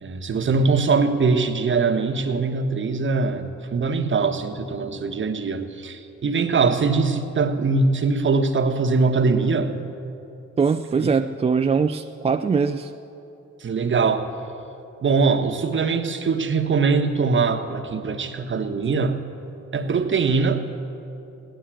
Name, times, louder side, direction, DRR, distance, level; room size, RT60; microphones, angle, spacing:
voice 1, 0.0-9.8 11.0-11.1 13.6-14.3 15.0-19.2 19.7-20.6, right 4 dB, 40° right, 1.2 m, -22 dB
voice 2, 10.6-12.9, right 5 dB, 20° right, 0.4 m, -22 dB
16.5 x 11.5 x 7.6 m
cardioid pair, 90°, 30 cm